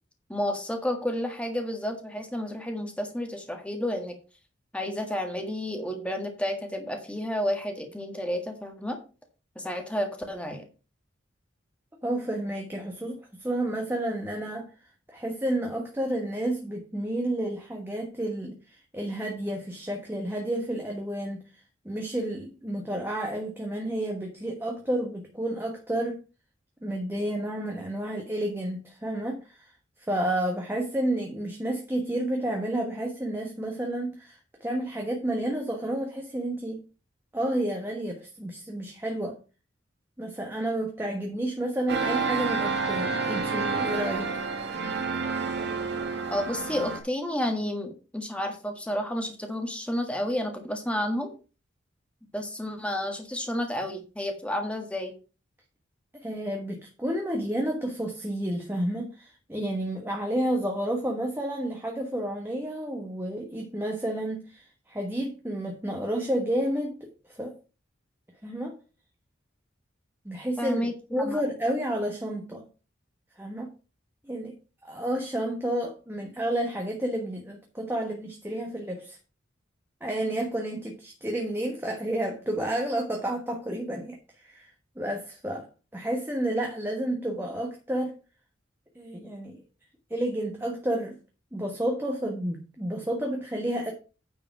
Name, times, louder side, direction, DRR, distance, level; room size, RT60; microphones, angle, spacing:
voice 1, 0.3-4.2 4.7-9.0 9.6-10.7 46.3-51.3 52.3-55.1 70.6-70.9 71.2-71.4, left 1 dB, 5° left, 1.6 m, -31 dB
voice 2, 12.0-14.7 15.1-21.4 21.8-26.2 26.8-29.6 30.1-36.8 37.3-39.4 40.2-44.3 56.2-67.5 68.4-68.8 70.2-72.7 73.4-73.7 74.3-74.5 74.8-79.2 80.0-84.7 85.0-85.7 85.9-88.2 88.9-89.6 90.1-91.2 91.5-93.9, right 1 dB, 10° right, 1.3 m, -30 dB
sound 1, 41.9-47.0, right 4 dB, 55° right, 1.8 m, -29 dB
9.5 x 5.0 x 5.9 m
head